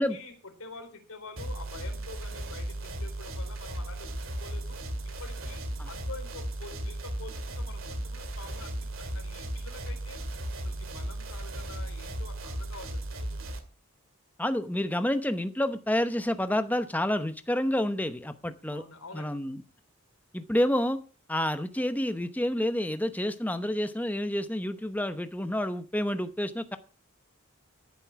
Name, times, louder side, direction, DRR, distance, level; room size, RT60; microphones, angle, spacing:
voice 1, 0.0-4.8 5.2-10.2 10.6-13.5 18.7-19.4, left 3 dB, 85° left, 3.8 m, -47 dB
sound 1, 1.4-13.6, right 1 dB, 70° right, 2.3 m, -36 dB
voice 2, 14.4-18.8 19.1-19.6 20.3-21.0 21.3-26.8, left 1 dB, 10° left, 0.8 m, -29 dB
14.0 x 7.8 x 5.8 m
head